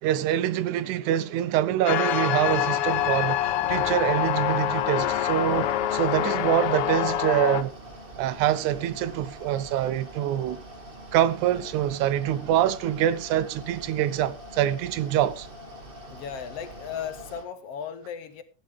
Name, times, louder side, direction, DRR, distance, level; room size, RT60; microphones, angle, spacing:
voice 1, 0.0-7.7 8.2-10.6 11.1-15.5, right 11 dB, 80° right, 2.2 m, -25 dB
sound 1, 1.9-7.6, left 12 dB, 90° left, 1.2 m, -25 dB
Mechanical fan, 2.8-17.4, equal, 20° right, 1.7 m, -44 dB
voice 2, 16.1-18.4, left 8 dB, 65° left, 1.7 m, -36 dB
15.0 x 10.5 x 3.5 m
omnidirectional pair, 3.5 m